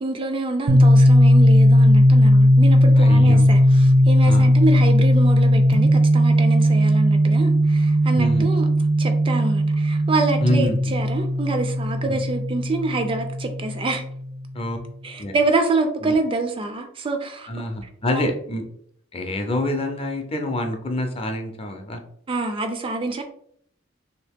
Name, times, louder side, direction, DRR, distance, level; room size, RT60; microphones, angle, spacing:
voice 1, 0.0-8.7 9.0-14.0 15.0-17.5 18.1-18.3 22.3-23.2, right 2 dB, 25° right, 6 dB, 0.3 m, -26 dB
sound 1, 0.7-14.3, equal, 85° right, 0.7 m, -17 dB
voice 2, 3.0-3.5 4.3-4.5 8.1-8.5 10.4-10.9 12.1-12.2 14.5-14.8 15.2-15.3 16.0-16.1 17.5-18.6 19.1-22.0, left 1 dB, 30° left, 5 dB, 0.5 m, -26 dB
2.9 x 2.8 x 3.4 m, 0.66 s
head